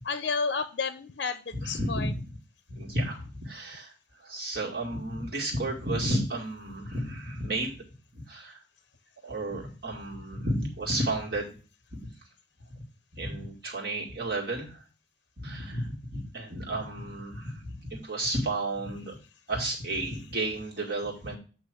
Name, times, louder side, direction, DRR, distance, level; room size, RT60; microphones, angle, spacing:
voice 1, 0.1-2.1, left 5 dB, 60° left, 10 dB, 0.5 m, -31 dB
voice 2, 1.5-2.4 2.7-3.9 4.2-7.8 8.1-8.6 9.2-11.5 12.0-12.1 12.7-12.8 13.1-14.7 15.4-19.1 19.5-21.4, right 1 dB, 55° right, -3 dB, 2.1 m, -32 dB
8.2 x 3.0 x 6.2 m, 0.35 s
head